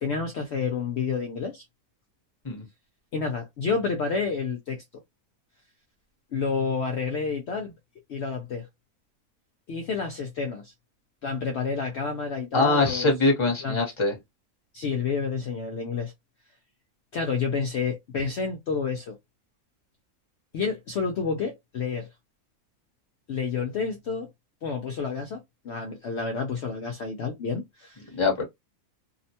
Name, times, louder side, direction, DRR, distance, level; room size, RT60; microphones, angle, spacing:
voice 1, 0.0-1.6 3.1-4.8 6.3-7.7 8.1-8.7 9.7-10.7 11.2-13.1 13.6-13.9 14.7-16.1 17.1-19.2 20.5-22.1 23.3-24.3 24.6-28.0, left 5 dB, 65° left, 0.7 m, -29 dB
voice 2, 12.5-14.1 28.1-28.4, left 3 dB, 25° left, 0.8 m, -23 dB
2.7 x 2.1 x 2.7 m
omnidirectional pair, 1.6 m